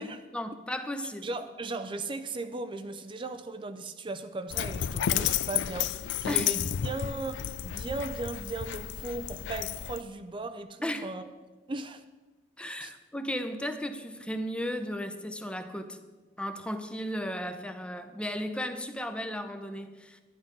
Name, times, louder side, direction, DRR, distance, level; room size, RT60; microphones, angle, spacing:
voice 1, 0.3-1.3 6.3-6.5 10.8-11.1 12.6-16.0 16.4-20.2, equal, 5° left, 8 dB, 0.8 m, -35 dB
voice 2, 1.2-11.2 11.7-12.0 12.8-12.9, right 2 dB, 30° right, 9 dB, 0.5 m, -37 dB
Dog, 4.5-10.0, left 10 dB, 75° left, 0.4 m, -31 dB
11.0 x 10.5 x 5.3 m, 1.2 s
head